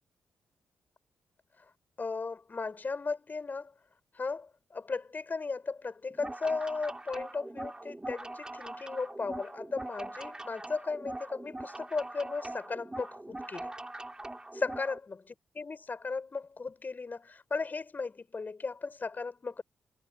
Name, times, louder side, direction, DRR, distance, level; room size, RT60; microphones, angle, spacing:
voice 1, 2.0-3.7 4.1-13.7 14.5-19.6, left 4 dB, 45° left, 6.8 m, -36 dB
sound 1, 6.1-15.0, right 2 dB, 20° right, 3.4 m, -42 dB
supercardioid pair, 45°, 4 cm